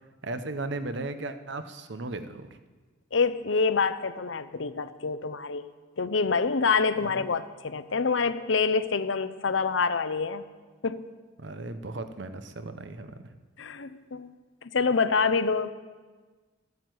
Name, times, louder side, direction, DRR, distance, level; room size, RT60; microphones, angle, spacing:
voice 1, 0.2-2.6 7.0-7.3 11.4-13.3, right 2 dB, 60° right, 10 dB, 0.9 m, -36 dB
voice 2, 3.1-5.6 6.0-10.4 10.8-11.1 13.6-14.3 14.6-15.7, left 4 dB, 70° left, 13 dB, 0.7 m, -26 dB
14.5 x 9.4 x 7.8 m, 1.4 s
head